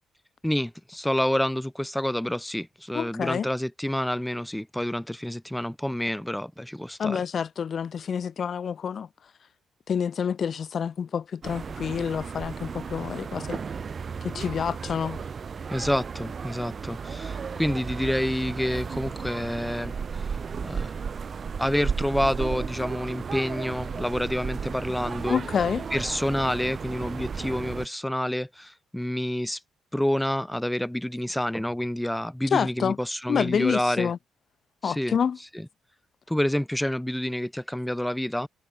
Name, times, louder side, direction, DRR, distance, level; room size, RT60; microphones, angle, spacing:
voice 1, 0.4-7.2 15.7-20.3 20.6-21.0 21.6-25.4 25.9-29.6 29.9-34.1 34.8-35.2 35.5-35.7 36.3-38.5, left 1 dB, 5° left, 0.7 m, -28 dB
voice 2, 2.9-3.5 7.0-9.1 9.9-13.6 14.2-15.2 25.3-25.9 32.5-33.0 33.3-34.2 34.8-35.4, left 7 dB, 50° left, 1.8 m, -27 dB
sound 1, 11.4-27.9, right 6 dB, 45° right, 1.1 m, -34 dB
cardioid pair, 90°, 0 cm